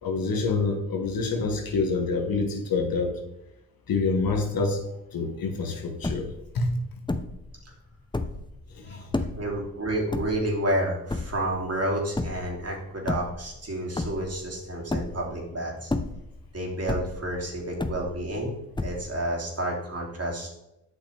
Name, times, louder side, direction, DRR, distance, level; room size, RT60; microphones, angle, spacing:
voice 1, 0.0-3.1 3.9-4.8 5.1-6.3 6.5-6.7 8.8-9.3, left 4 dB, 75° left, 3 dB, 1.5 m, -27 dB
sound 1, 6.0-6.5 7.1-7.5 8.0-8.5 9.1-9.5 10.1-10.7 11.1-11.6 12.2-12.6 13.0-13.7 14.0-14.5 14.9-15.4 15.8-16.5 16.9-17.4 17.8-18.4 18.8-19.3, left 2 dB, 15° left, 0.8 m, -30 dB
voice 2, 9.4-15.9 16.5-18.5 18.8-20.5, right 1 dB, 45° right, -2 dB, 2.9 m, -30 dB
8.0 x 5.9 x 3.4 m, 0.89 s
supercardioid pair, 45°, 36 cm